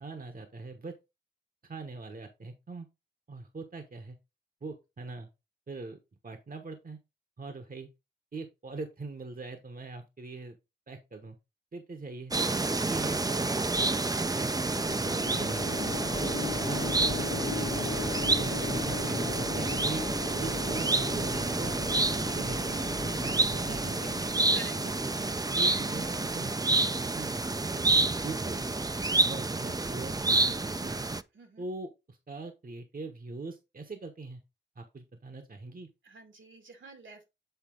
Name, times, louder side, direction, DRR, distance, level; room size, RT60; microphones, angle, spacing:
voice 1, 0.0-0.9 1.6-2.9 3.3-4.2 4.6-5.3 5.7-6.0 6.2-7.0 7.4-7.9 8.3-10.6 10.9-11.4 11.7-12.3 12.6-13.7 14.2-15.8 16.2-17.9 18.2-20.0 20.4-22.6 23.2-24.3 25.4-26.1 26.3-27.3 27.7-28.7 29.2-31.0 31.6-34.4 34.8-35.9, right 3 dB, 50° right, 1.1 m, -42 dB
sound 1, 12.3-31.2, right 2 dB, 20° right, 0.5 m, -29 dB
sound 2, 14.8-27.0, left 4 dB, 75° left, 1.1 m, -39 dB
sound 3, 15.8-23.9, left 1 dB, 15° left, 0.9 m, -43 dB
voice 2, 31.3-31.7 36.0-37.2, right 3 dB, 80° right, 2.2 m, -47 dB
8.2 x 4.0 x 3.8 m
cardioid pair, 55°, 19 cm